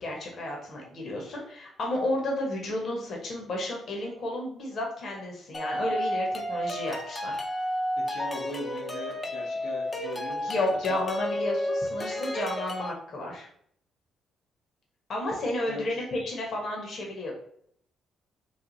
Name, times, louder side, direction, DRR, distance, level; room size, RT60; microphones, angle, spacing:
voice 1, 0.0-7.4 10.5-13.5 15.1-17.3, left 1 dB, 55° left, -1 dB, 1.1 m, -32 dB
sound 1, 5.5-12.9, equal, 25° left, 0.6 m, -32 dB
voice 2, 8.0-11.0 15.7-16.0, left 1 dB, 90° left, -1 dB, 1.1 m, -40 dB
3.2 x 2.3 x 3.9 m, 0.65 s
cardioid pair, 90°, 0 cm